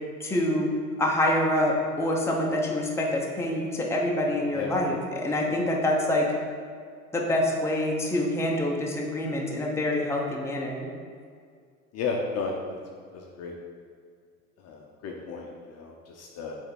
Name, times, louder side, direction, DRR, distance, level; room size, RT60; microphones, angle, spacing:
voice 1, 0.2-0.7 1.0-6.3 7.1-10.9, left 1 dB, 5° left, -1 dB, 0.9 m, -26 dB
voice 2, 11.9-12.5 13.1-13.5 14.6-16.6, left 5 dB, 35° left, 0 dB, 0.8 m, -33 dB
7.8 x 3.6 x 4.2 m, 2.1 s
figure-of-eight pair, 80°, 47 cm